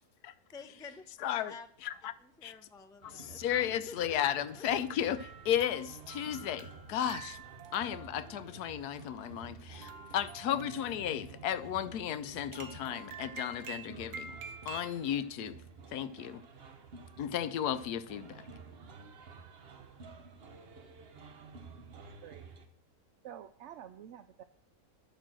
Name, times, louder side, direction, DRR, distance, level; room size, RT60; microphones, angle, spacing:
voice 1, 0.5-1.0 1.3-1.7 2.2-4.0 4.5-4.6, left 4 dB, 5° left, 0.5 m, -50 dB
voice 2, 1.2-1.5 1.8-2.1 2.4-2.5 3.0-7.4 7.7-14.4 14.7-15.6 15.9-16.4 17.2-18.4, left 10 dB, 80° left, 1.2 m, -34 dB
sound 1, 3.0-22.7, right 4 dB, 45° right, 1.1 m, -51 dB
sound 2, 5.2-15.1, right 5 dB, 85° right, 1.6 m, -49 dB
voice 3, 23.2-24.4, right 10 dB, 65° right, 0.7 m, -48 dB
11.5 x 6.7 x 7.5 m
omnidirectional pair, 1.7 m